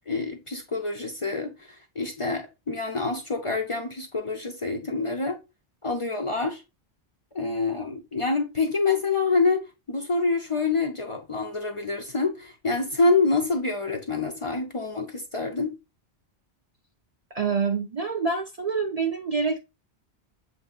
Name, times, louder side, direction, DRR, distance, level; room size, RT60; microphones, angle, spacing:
voice 1, 0.1-5.4 5.8-6.6 7.3-9.6 9.9-15.7, left 3 dB, 40° left, 0.6 m, -26 dB
voice 2, 17.3-19.6, right 5 dB, 50° right, 0.5 m, -26 dB
7.1 x 2.7 x 2.2 m
omnidirectional pair, 1.1 m